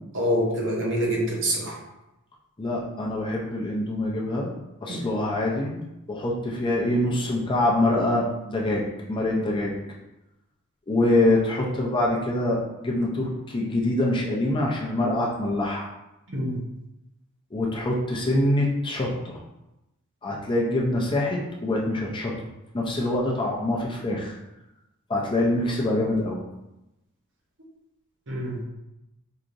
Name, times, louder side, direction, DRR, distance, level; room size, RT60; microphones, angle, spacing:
voice 1, 0.1-1.8 4.9-5.1 16.3-16.6 28.3-28.6, equal, 60° right, -2 dB, 0.9 m, -26 dB
voice 2, 2.6-4.5 4.8-5.8 6.1-9.7 10.9-15.9 17.5-19.4 20.2-22.3 22.7-24.4 25.1-26.4, left 1 dB, 20° left, -3 dB, 0.5 m, -25 dB
4.7 x 2.8 x 2.5 m, 0.94 s
head